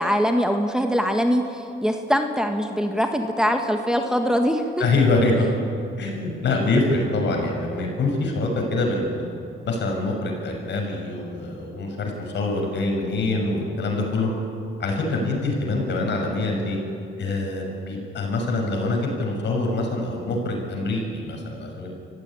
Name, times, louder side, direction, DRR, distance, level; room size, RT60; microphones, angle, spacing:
voice 1, 0.0-4.6, equal, 5° right, 4 dB, 1.7 m, -22 dB
voice 2, 4.8-5.5 6.0-9.2 9.6-14.3 14.8-16.8 17.2-21.9, left 2 dB, 65° left, 1 dB, 6.2 m, -25 dB
25.5 x 15.5 x 10.0 m, 2.6 s
cardioid pair, 90°, 20 cm